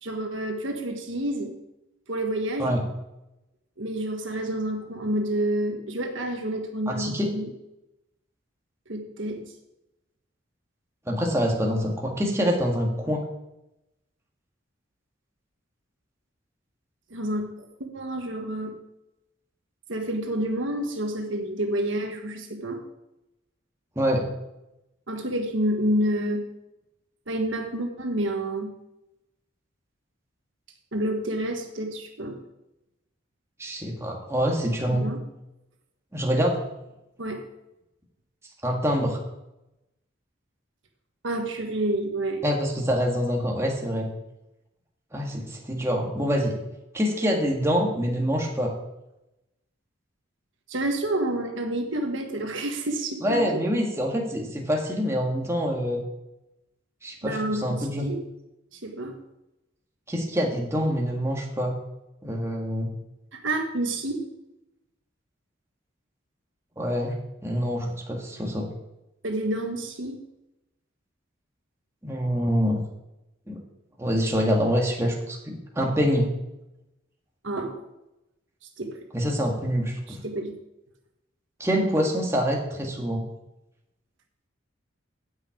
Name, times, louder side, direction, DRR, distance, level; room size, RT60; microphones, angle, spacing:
voice 1, 0.0-1.5 2.1-2.7 3.8-7.5 8.9-9.5 17.1-17.6 17.9-18.7 19.9-22.8 25.1-26.4 27.3-28.7 30.9-32.4 35.0-35.2 37.2-37.4 41.2-42.4 50.7-53.5 57.2-58.2 58.7-59.2 63.3-64.2 69.2-70.2 77.4-77.9 78.8-79.0 80.1-80.5, right 1 dB, 70° right, 3 dB, 1.6 m, -29 dB
voice 2, 6.9-7.3 11.1-13.3 24.0-24.3 33.6-35.0 36.1-36.7 38.6-39.2 42.4-44.1 45.1-46.6 46.9-48.7 53.2-56.0 57.0-58.1 60.1-61.7 62.2-62.9 66.8-68.7 72.0-72.8 73.5-73.6 74.0-76.3 79.1-80.2 81.6-83.2, equal, 15° right, -1 dB, 1.9 m, -25 dB
9.7 x 5.9 x 8.5 m, 0.91 s
head